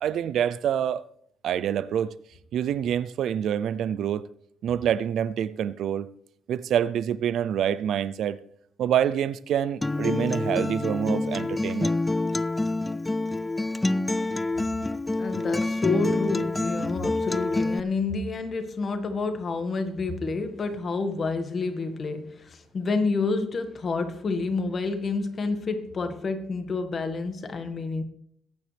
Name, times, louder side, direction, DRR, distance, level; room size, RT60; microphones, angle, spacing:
voice 1, 0.0-1.0 1.4-2.1 2.5-4.3 4.6-6.1 6.5-8.4 8.8-12.0, right 9 dB, 75° right, 0.5 m, -26 dB
Acoustic guitar, 9.8-17.8, left 2 dB, 15° left, 0.4 m, -27 dB
voice 2, 15.2-28.0, left 3 dB, 45° left, 1.9 m, -29 dB
21.5 x 9.3 x 3.5 m
cardioid pair, 90°, 0 cm